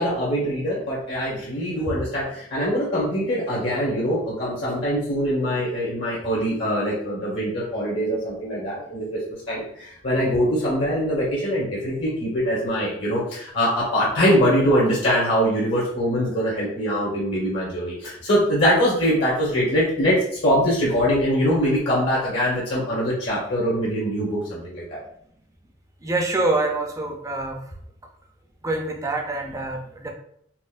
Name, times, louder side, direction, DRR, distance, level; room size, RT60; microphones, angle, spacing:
voice 1, 0.0-9.2 9.5-20.1 20.4-25.0, equal, 70° left, -6 dB, 1.1 m, -23 dB
voice 2, 26.0-27.6 28.6-30.1, right 2 dB, 15° right, 2 dB, 0.4 m, -25 dB
4.2 x 2.1 x 2.5 m, 0.68 s
head